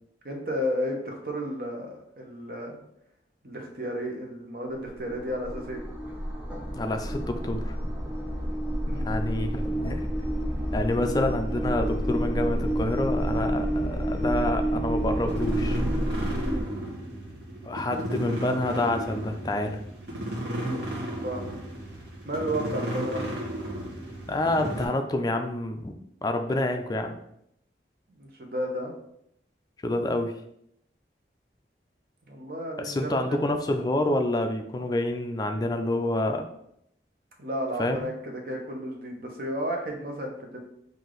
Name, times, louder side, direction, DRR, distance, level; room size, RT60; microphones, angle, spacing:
voice 1, 0.2-2.8 3.4-5.8 8.9-9.2 16.3-16.7 20.5-21.6 22.2-23.2 28.2-28.9 32.3-33.4 37.4-40.6, equal, 55° right, 1 dB, 1.0 m, -33 dB
sound 1, 4.7-16.6, right 1 dB, 10° right, 0.7 m, -29 dB
voice 2, 6.7-7.8 9.0-10.1 10.7-15.8 17.6-19.8 24.3-25.9 26.2-27.2 29.8-30.4 32.8-36.5 37.8-38.0, left 1 dB, 20° left, 5 dB, 0.4 m, -28 dB
sound 2, 15.0-24.9, right 1 dB, 80° right, 1.0 m, -34 dB
4.9 x 2.7 x 3.8 m, 0.74 s
head